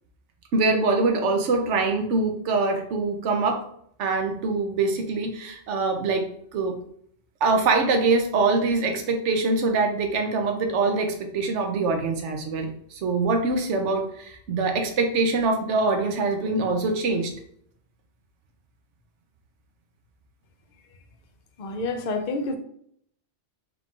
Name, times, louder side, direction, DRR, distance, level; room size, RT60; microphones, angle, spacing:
voice 1, 0.5-3.6 4.0-6.8 7.4-17.3, right 3 dB, 80° right, 1.0 m, -24 dB
voice 2, 21.6-22.6, left 3 dB, 50° left, 0.6 m, -28 dB
4.7 x 2.4 x 3.7 m
omnidirectional pair, 1.2 m